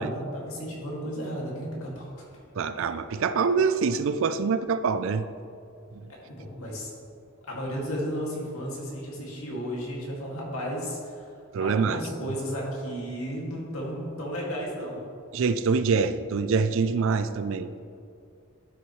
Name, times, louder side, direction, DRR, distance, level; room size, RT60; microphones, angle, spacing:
voice 1, 0.0-2.3 6.1-6.9 7.5-11.3 11.6-15.0, equal, 80° left, -3 dB, 2.1 m, -34 dB
voice 2, 2.6-5.3 5.9-6.0 11.5-12.3 15.3-17.8, right 5 dB, 65° right, 12 dB, 0.4 m, -25 dB
11.5 x 6.2 x 3.1 m, 2.5 s
head